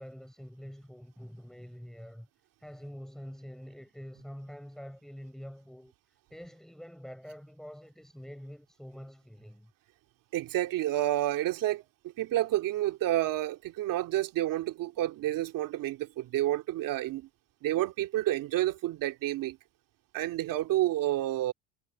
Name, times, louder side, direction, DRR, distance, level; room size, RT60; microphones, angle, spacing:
voice 1, 0.0-2.3 2.6-5.9 6.3-9.7, equal, ahead, 7.1 m, -46 dB
voice 2, 10.3-11.8 12.2-17.3 17.6-19.6 20.1-21.5, right 14 dB, 65° right, 2.6 m, -29 dB
cardioid pair, 110°, 35 cm